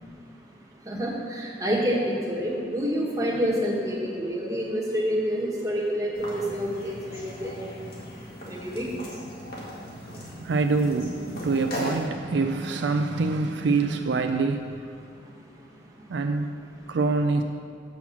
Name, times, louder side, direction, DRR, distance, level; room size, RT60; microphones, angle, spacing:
voice 1, 0.8-7.6 8.5-8.9, equal, 20° right, -3 dB, 1.3 m, -28 dB
sound 1, 6.1-12.1, left 1 dB, 55° left, 1.8 m, -38 dB
voice 2, 9.8-14.7 16.1-16.5 16.9-17.4, right 3 dB, 70° right, 6 dB, 0.4 m, -25 dB
6.2 x 5.9 x 7.1 m, 2.7 s
head